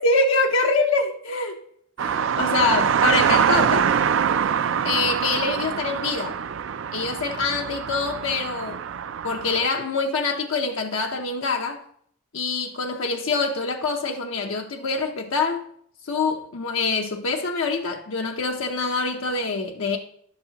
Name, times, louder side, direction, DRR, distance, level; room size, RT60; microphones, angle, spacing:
voice 1, 0.0-1.6 2.0-3.9 4.8-6.4 6.9-8.8 9.2-11.8 12.3-15.6 16.0-20.0, left 3 dB, 75° left, 0.7 m, -25 dB
sound 1, 2.0-9.7, right 7 dB, 65° right, 0.4 m, -24 dB
11.5 x 7.6 x 2.9 m
head